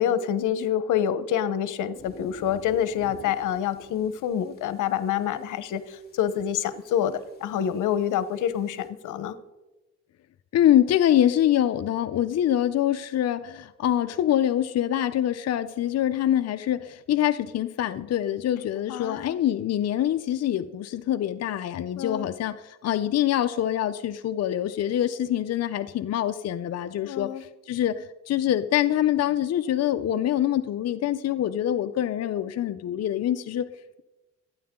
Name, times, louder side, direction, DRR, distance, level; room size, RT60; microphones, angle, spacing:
voice 1, 0.0-9.4 18.9-19.4 21.9-22.3 27.0-27.4, left 9 dB, 85° left, 13 dB, 1.1 m, -27 dB
sound 1, 1.9-8.9, left 3 dB, 30° left, 3.5 m, -51 dB
voice 2, 10.5-33.7, left 11 dB, 55° left, 10 dB, 0.7 m, -25 dB
27.5 x 9.5 x 3.8 m, 1.1 s
cardioid pair, 90°, 30 cm